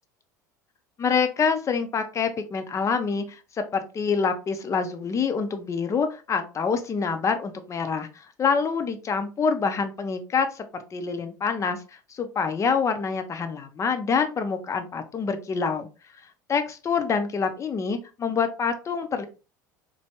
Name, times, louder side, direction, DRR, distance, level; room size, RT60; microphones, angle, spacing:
voice 1, 1.0-3.4 3.7-8.1 8.4-11.8 12.1-15.9 16.5-19.3, left 5 dB, 30° left, 7 dB, 0.6 m, -26 dB
3.3 x 2.2 x 2.8 m, 0.32 s
hypercardioid pair, 75°, 10 cm